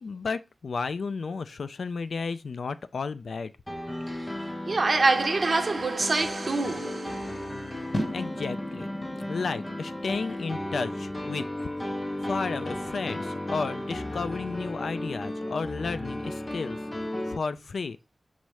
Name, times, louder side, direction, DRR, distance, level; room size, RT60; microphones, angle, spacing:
voice 1, 0.0-3.5 8.1-8.9 9.3-11.4 12.2-16.8 17.3-18.0, left 4 dB, 90° left, 0.3 m, -32 dB
Piano, 3.7-17.4, left 1 dB, 20° left, 0.5 m, -35 dB
voice 2, 3.9-8.1, right 3 dB, 50° right, 0.8 m, -27 dB
sound 1, 7.9-14.2, equal, 45° left, 0.8 m, -39 dB
5.4 x 2.0 x 4.6 m
wide cardioid pair, 105°, 0 cm